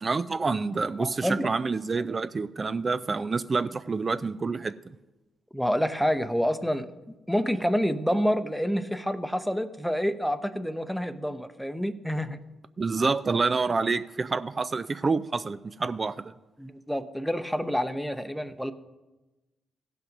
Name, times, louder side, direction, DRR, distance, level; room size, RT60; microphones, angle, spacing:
voice 1, 0.0-4.8 12.8-16.3, right 4 dB, 40° right, 0.4 m, -28 dB
voice 2, 1.0-1.5 5.5-6.9 7.3-12.4 16.6-18.7, equal, 5° left, 0.8 m, -28 dB
15.5 x 5.8 x 5.2 m
supercardioid pair, 50°, 0 cm